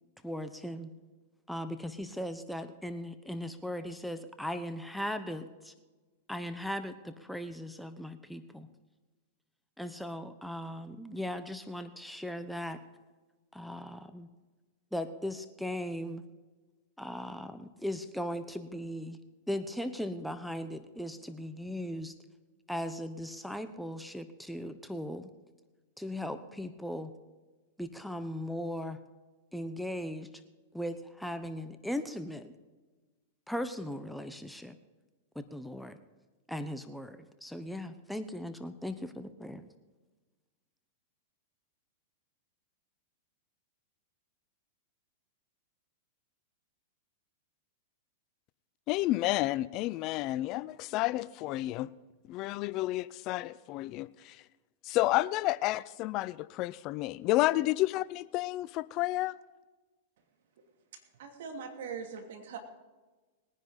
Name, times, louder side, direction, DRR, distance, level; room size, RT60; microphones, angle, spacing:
voice 1, 0.2-0.9 1.5-5.7 6.3-8.7 9.8-12.8 13.5-14.3 14.9-16.2 17.0-19.2 19.5-22.1 22.7-25.3 26.0-27.1 27.8-29.0 29.5-30.3 30.7-32.5 33.5-34.7 35.3-36.0 36.5-39.7, equal, ahead, 9 dB, 0.9 m, -38 dB
voice 2, 48.9-51.9 52.3-54.4 54.8-59.3, left 17 dB, 45° left, 18 dB, 0.5 m, -30 dB
voice 3, 61.2-62.6, right 6 dB, 70° right, 4 dB, 2.9 m, -41 dB
20.5 x 10.0 x 4.1 m, 1.2 s
hypercardioid pair, 115°, 0 cm